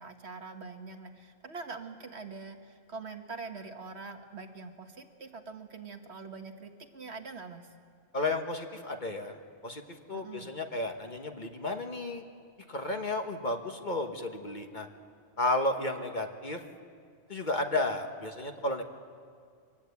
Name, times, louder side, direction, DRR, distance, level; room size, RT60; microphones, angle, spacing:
voice 1, 0.0-7.7 10.1-10.5, right 4 dB, 55° right, 5 dB, 1.6 m, -44 dB
voice 2, 8.1-9.8 10.1-12.2 12.7-14.9 15.4-16.6 17.3-18.8, left 2 dB, 40° left, 4 dB, 1.4 m, -32 dB
24.0 x 19.0 x 8.4 m, 2.2 s
omnidirectional pair, 1.3 m